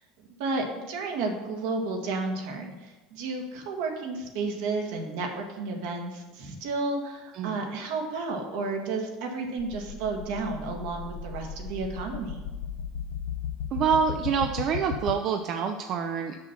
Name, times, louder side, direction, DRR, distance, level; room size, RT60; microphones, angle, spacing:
voice 1, 0.4-12.4, right 3 dB, 75° right, 2 dB, 1.6 m, -32 dB
sound 1, 9.6-15.1, left 7 dB, 90° left, 0.4 m, -36 dB
voice 2, 13.7-16.4, right 6 dB, 50° right, 5 dB, 0.5 m, -26 dB
6.2 x 5.8 x 5.7 m, 1.2 s
supercardioid pair, 125°, 0 cm